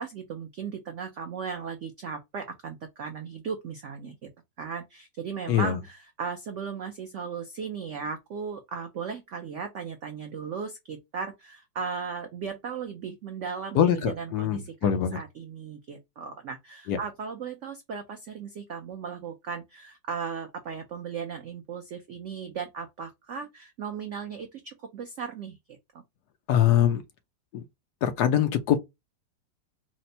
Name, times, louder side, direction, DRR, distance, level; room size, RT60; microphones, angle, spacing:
voice 1, 0.0-4.3 4.6-26.0, right 6 dB, 80° right, 0.6 m, -37 dB
voice 2, 5.5-5.8 13.7-15.2 16.9-17.0 26.5-27.0 27.5-27.6 28.0-28.8, left 10 dB, 70° left, 1.1 m, -23 dB
4.2 x 2.1 x 2.6 m
omnidirectional pair, 2.0 m